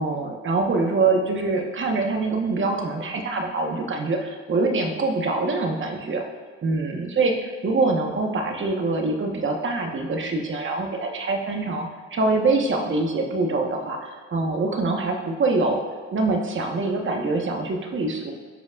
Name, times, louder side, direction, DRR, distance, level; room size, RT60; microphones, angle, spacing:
voice 1, 0.0-6.2 6.6-7.3 7.6-15.8 16.1-18.3, right 3 dB, 40° right, 2 dB, 1.1 m, -24 dB
13.0 x 5.1 x 2.4 m, 1.5 s
cardioid pair, 90°, 30 cm